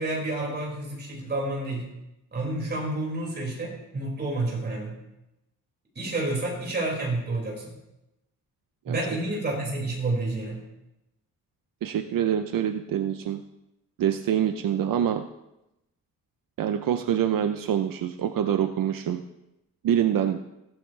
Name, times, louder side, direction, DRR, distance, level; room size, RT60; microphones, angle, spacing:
voice 1, 0.0-1.9 2.3-4.9 6.0-7.7 8.9-10.6, right 2 dB, 30° right, -3 dB, 5.3 m, -29 dB
voice 2, 11.8-13.4 14.0-15.2 16.6-19.2 19.8-20.4, right 9 dB, 75° right, 7 dB, 0.7 m, -25 dB
16.5 x 14.5 x 3.3 m, 0.92 s
wide cardioid pair, 180°, 34 cm